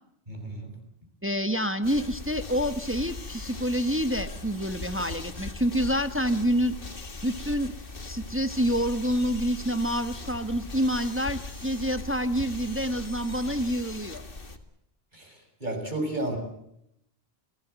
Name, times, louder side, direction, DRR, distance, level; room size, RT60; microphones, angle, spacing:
voice 1, 0.3-0.7 15.1-15.3 15.6-16.4, right 1 dB, 45° right, 4 dB, 6.6 m, -32 dB
voice 2, 1.2-6.8 7.2-7.7 8.0-14.2, equal, 15° right, 10 dB, 1.1 m, -27 dB
sound 1, 1.8-14.6, left 2 dB, 60° left, 2.2 m, -39 dB
28.5 x 17.5 x 8.1 m, 0.78 s
omnidirectional pair, 1.0 m